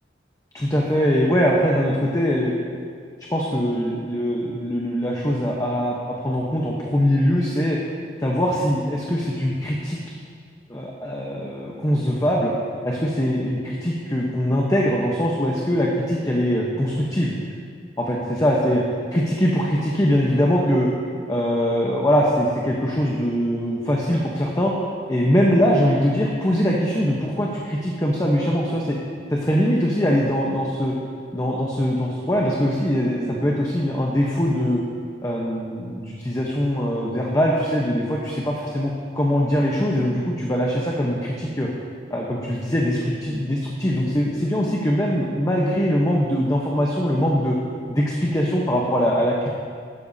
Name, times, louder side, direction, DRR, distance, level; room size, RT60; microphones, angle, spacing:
voice 1, 0.5-2.8 3.3-7.8 8.2-10.0 10.7-12.5 12.8-17.3 18.0-18.8 19.1-20.9 21.3-24.7 25.1-29.0 29.3-30.9 31.3-34.8 35.2-41.7 42.1-47.6 47.9-49.5, equal, 20° left, -3 dB, 0.9 m, -22 dB
15.5 x 12.5 x 2.8 m, 2.2 s
head